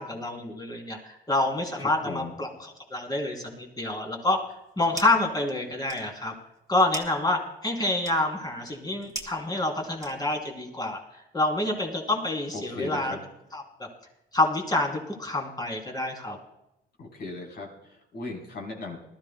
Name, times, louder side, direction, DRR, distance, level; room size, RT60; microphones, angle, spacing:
voice 1, 0.0-4.4 4.8-6.3 6.7-13.1 13.5-13.6 14.3-16.4, left 2 dB, 20° left, 2 dB, 3.0 m, -27 dB
voice 2, 1.8-2.3 12.5-13.2 17.0-19.1, left 3 dB, 55° left, 0 dB, 3.9 m, -37 dB
sound 1, 4.5-5.3 5.6-10.5, right 2 dB, 15° right, 1.6 m, -42 dB
20.5 x 13.0 x 2.2 m, 0.85 s
cardioid pair, 90°, 20 cm